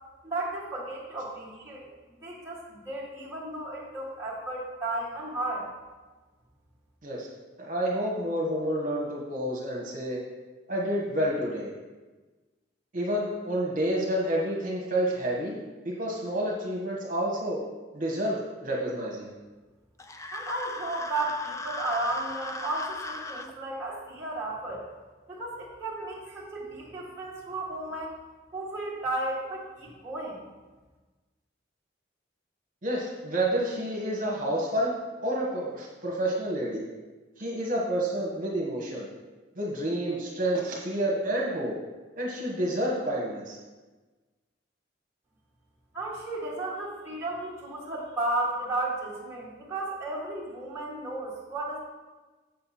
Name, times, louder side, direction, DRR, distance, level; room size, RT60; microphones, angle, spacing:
voice 1, 0.2-1.9 2.2-5.7 20.3-24.9 25.3-28.2 28.5-30.4 45.9-51.8, right 2 dB, 15° right, -7 dB, 1.7 m, -34 dB
voice 2, 7.6-10.2 10.7-11.7 12.9-17.6 17.9-19.3 32.8-34.9 35.2-36.8 37.4-39.1 39.6-41.7 42.2-43.6, right 1 dB, 45° right, -3 dB, 1.4 m, -29 dB
sound 1, 20.0-23.5, left 3 dB, 15° left, 0.4 m, -38 dB
8.0 x 6.6 x 4.3 m, 1.3 s
head